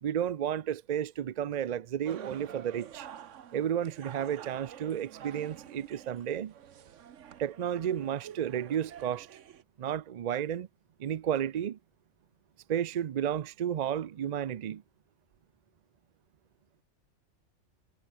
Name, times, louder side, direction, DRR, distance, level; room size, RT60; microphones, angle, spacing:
voice 1, 0.0-3.1 3.5-6.5 7.4-9.3 9.8-10.7 11.0-11.8 12.7-14.8, right 9 dB, 60° right, 0.4 m, -32 dB
sound 1, 2.0-9.6, right 9 dB, 80° right, 1.2 m, -48 dB
omnidirectional pair, 1.3 m